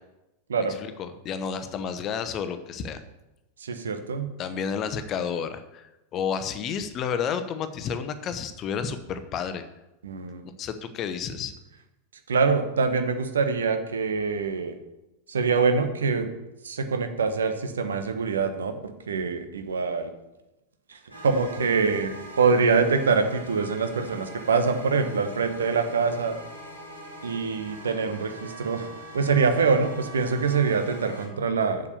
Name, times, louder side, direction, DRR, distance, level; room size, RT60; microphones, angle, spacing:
voice 1, 0.8-3.0 4.4-9.6 10.6-11.5, left 7 dB, 30° left, 10 dB, 0.9 m, -31 dB
voice 2, 3.6-4.3 10.0-10.4 12.3-14.8 15.3-16.3 16.6-20.1 20.9-26.4 27.2-28.9 29.1-31.9, right 5 dB, 70° right, 8 dB, 1.1 m, -24 dB
sound 1, 21.1-31.3, right 1 dB, 85° right, 2.7 m, -42 dB
7.2 x 6.6 x 6.9 m, 0.97 s
figure-of-eight pair, 90°, 0 cm